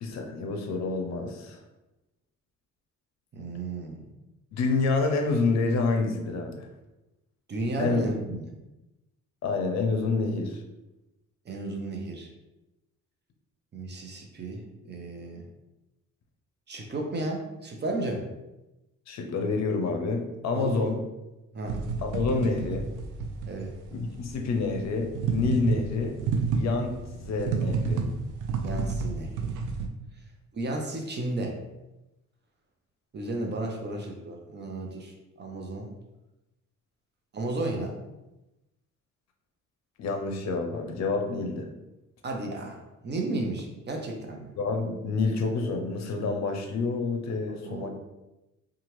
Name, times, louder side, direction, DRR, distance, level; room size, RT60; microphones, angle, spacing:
voice 1, 0.0-1.6 4.5-6.7 7.8-8.0 9.4-10.6 19.1-21.0 22.0-22.9 23.9-26.1 26.5-28.1 40.0-41.7 44.6-47.9, left 3 dB, 60° left, 4 dB, 0.6 m, -28 dB
voice 2, 3.3-4.1 7.5-8.5 11.5-12.3 13.7-15.4 16.7-18.3 20.5-20.8 21.5-21.8 23.5-23.7 28.6-29.5 30.5-31.5 33.1-35.9 37.3-38.0 42.2-44.5 47.5-47.9, right 2 dB, 35° right, 2 dB, 0.6 m, -33 dB
sound 1, 21.6-29.9, right 4 dB, 80° right, 0.5 m, -30 dB
2.8 x 2.3 x 3.0 m, 0.98 s
cardioid pair, 90°, 30 cm